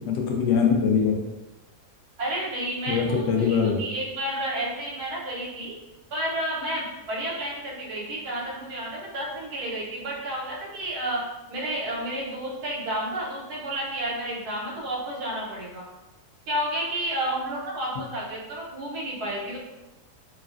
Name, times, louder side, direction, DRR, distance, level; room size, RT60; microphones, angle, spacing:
voice 1, 0.1-1.2 2.9-3.8, left 6 dB, 85° left, 1 dB, 1.2 m, -22 dB
voice 2, 2.2-5.7 6.1-11.2 11.5-15.8 16.5-19.6, right 1 dB, 70° right, -4 dB, 1.3 m, -31 dB
3.2 x 2.3 x 2.4 m, 1.0 s
omnidirectional pair, 1.7 m